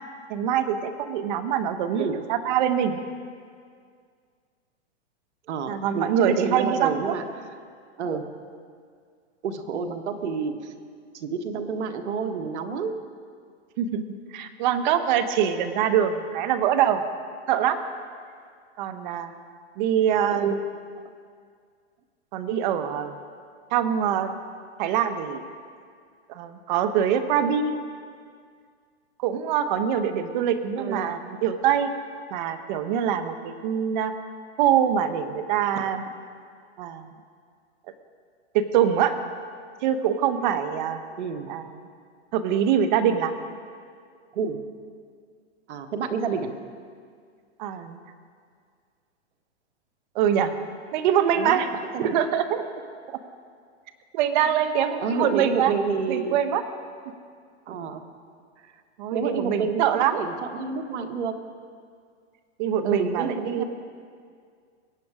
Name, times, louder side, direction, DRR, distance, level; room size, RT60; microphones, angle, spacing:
voice 1, 0.3-3.0 5.7-7.1 13.8-14.0 14.3-17.0 17.5-17.8 18.8-19.3 19.8-20.6 22.3-23.2 23.7-24.3 24.8-25.4 26.3-27.8 29.2-31.9 32.3-34.1 34.6-36.0 36.8-37.1 38.5-39.1 39.8-41.0 41.5-41.7 42.3-43.3 47.6-48.0 50.1-50.5 50.9-51.7 52.0-52.6 53.1-53.2 54.1-55.7 56.1-56.6 59.0-60.2 62.6-63.6, right 9 dB, 40° right, 9 dB, 1.1 m, -24 dB
voice 2, 5.5-7.5 8.0-8.3 9.4-10.7 11.1-12.9 20.3-20.7 30.8-31.1 41.2-41.5 44.3-44.6 45.7-46.5 51.3-51.6 51.9-52.2 54.4-54.7 55.0-56.4 57.7-58.0 58.6-58.7 59.1-61.4 62.8-63.6, right 5 dB, 70° right, 6 dB, 1.6 m, -29 dB
23.0 x 8.6 x 4.9 m, 2.1 s
hypercardioid pair, 150°, 35 cm